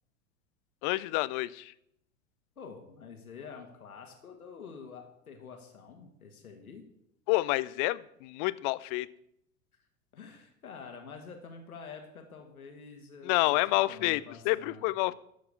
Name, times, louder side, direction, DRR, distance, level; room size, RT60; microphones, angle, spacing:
voice 1, 0.8-1.7 7.3-9.1 13.2-15.1, left 20 dB, 35° left, 18 dB, 0.5 m, -28 dB
voice 2, 2.6-6.8 10.1-13.6 13.9-14.8, left 5 dB, 80° left, 4 dB, 1.8 m, -47 dB
13.5 x 4.8 x 7.2 m, 0.76 s
figure-of-eight pair, 90°, 42 cm